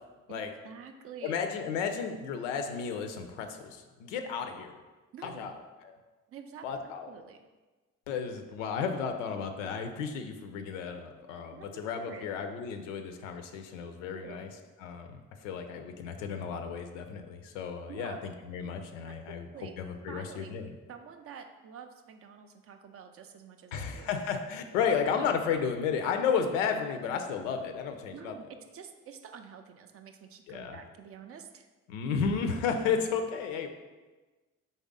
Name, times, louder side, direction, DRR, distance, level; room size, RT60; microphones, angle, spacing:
voice 1, 0.3-1.5 5.1-5.5 6.3-7.4 11.5-12.3 13.8-14.4 17.9-18.2 19.0-19.8 20.1-20.6 20.9-24.1 28.1-28.5 28.7-31.7, right 7 dB, 35° right, 6 dB, 0.4 m, -48 dB
voice 2, 1.2-4.8 5.2-5.5 5.8-5.9 6.6-7.1 8.1-14.5 14.8-19.5 19.8-20.7 23.7-28.3 30.5-30.8 31.9-33.7, left 6 dB, 70° left, 6 dB, 0.5 m, -33 dB
4.1 x 3.3 x 3.7 m, 1.2 s
figure-of-eight pair, 45°, 40 cm